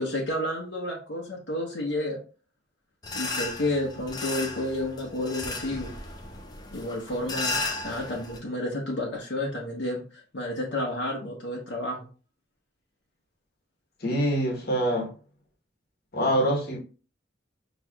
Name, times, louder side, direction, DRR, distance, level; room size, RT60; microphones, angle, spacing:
voice 1, 0.0-2.2 3.1-5.9 6.7-10.0 10.3-12.1, left 1 dB, 70° left, -2 dB, 1.0 m, -31 dB
sound 1, 3.0-8.4, left 3 dB, 20° left, 0.5 m, -34 dB
voice 2, 14.0-15.1 16.1-16.8, equal, 50° left, 0 dB, 1.2 m, -25 dB
6.0 x 3.1 x 2.3 m, 0.36 s
head